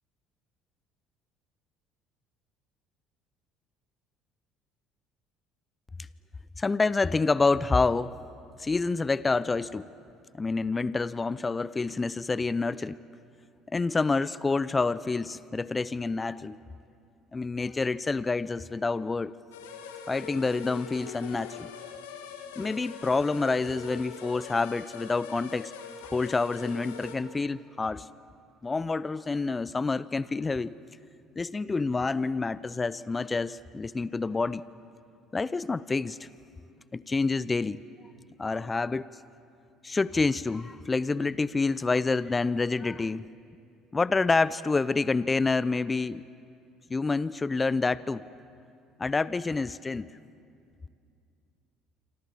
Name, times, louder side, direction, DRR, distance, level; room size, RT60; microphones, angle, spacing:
voice 1, 6.6-8.1 8.6-9.9 10.3-13.0 13.7-16.6 17.3-19.3 20.1-21.7 22.6-25.7 26.1-28.0 28.6-30.7 31.4-34.6 35.3-36.3 36.9-37.8 38.4-39.1 39.8-43.2 43.9-46.2 46.9-48.2 49.0-50.1, left 3 dB, 25° left, 18 dB, 0.6 m, -28 dB
sound 1, 19.5-27.2, left 6 dB, 75° left, 2.4 m, -43 dB
27.0 x 25.5 x 7.5 m, 2.4 s
hypercardioid pair, 60°, 0 cm